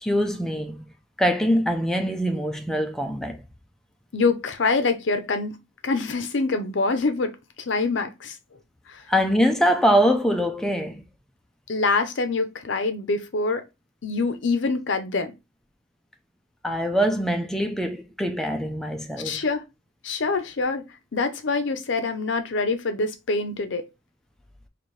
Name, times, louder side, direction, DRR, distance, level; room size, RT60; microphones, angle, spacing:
voice 1, 0.0-0.8 1.2-3.4 9.1-11.0 16.6-19.4, equal, 5° left, 0.4 m, -23 dB
voice 2, 4.1-5.6 5.8-7.3 7.7-8.4 8.9-9.0 11.7-13.6 14.0-15.3 19.2-19.6 20.0-20.8 21.1-23.9, left 3 dB, 70° left, 0.6 m, -25 dB
4.2 x 2.6 x 3.1 m
head